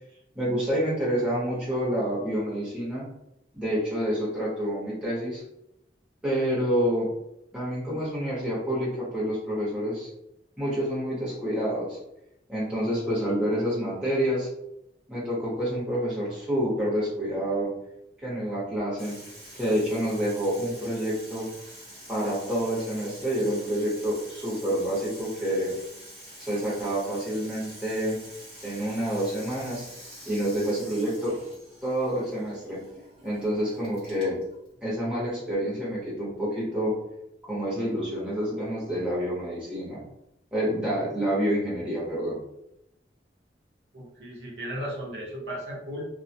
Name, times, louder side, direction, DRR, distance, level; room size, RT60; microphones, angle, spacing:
voice 1, 0.3-3.1 3.5-5.4 6.2-7.1 7.5-10.1 10.6-12.0 12.5-14.5 15.1-17.7 18.2-19.2 19.5-21.5 22.1-25.7 26.4-28.2 28.6-29.8 30.2-31.4 31.8-32.8 33.2-34.4 34.8-36.9 37.5-40.0 40.5-42.4, equal, 5° right, -8 dB, 0.9 m, -28 dB
Water tap faucet / Sink (filling or washing), 19.0-36.4, equal, 30° right, 1.1 m, -47 dB
voice 2, 43.9-46.1, equal, 80° right, -4 dB, 0.8 m, -35 dB
2.2 x 2.1 x 2.6 m, 0.82 s
head